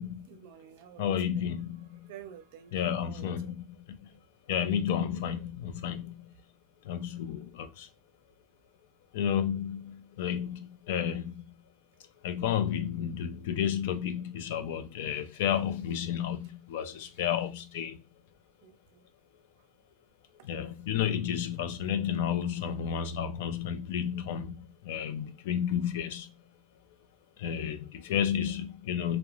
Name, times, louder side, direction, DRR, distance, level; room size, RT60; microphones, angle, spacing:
voice 1, 0.3-1.4 2.1-3.5 4.1-4.2 18.6-19.1 20.6-20.7, right 10 dB, 75° right, 0.4 m, -51 dB
voice 2, 1.0-2.1 2.7-3.8 4.5-6.3 6.8-7.9 9.1-11.4 12.2-18.0 20.4-26.3 27.4-29.2, left 9 dB, 80° left, 0.4 m, -32 dB
2.4 x 2.0 x 3.0 m
supercardioid pair, 145°, 0 cm